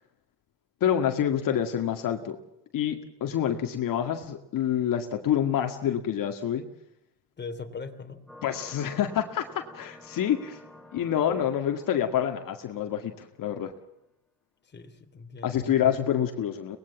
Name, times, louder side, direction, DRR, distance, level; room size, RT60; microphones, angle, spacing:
voice 1, 0.8-2.4 2.7-6.6 8.4-10.6 10.9-13.7 15.4-16.8, left 9 dB, 55° left, 5 dB, 2.1 m, -27 dB
voice 2, 7.4-8.2 14.6-16.3, left 4 dB, 25° left, 6 dB, 3.1 m, -41 dB
sound 1, 8.3-13.5, left 1 dB, ahead, 3.8 m, -51 dB
23.5 x 20.0 x 7.3 m, 0.80 s
cardioid pair, 105°, 39 cm